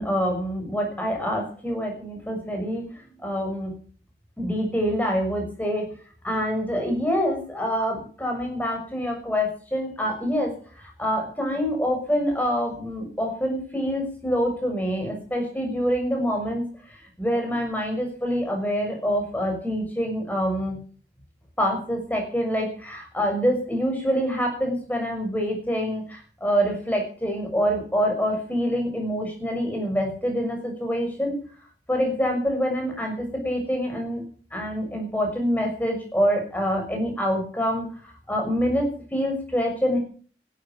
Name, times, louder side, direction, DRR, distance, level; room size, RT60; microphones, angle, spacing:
voice 1, 0.0-2.8 3.2-3.7 4.4-5.9 6.2-16.6 17.2-20.8 21.6-31.4 31.9-34.2 34.5-37.8 38.3-40.0, equal, 10° left, 1 dB, 6.4 m, -26 dB
16.0 x 12.0 x 7.5 m, 0.44 s
head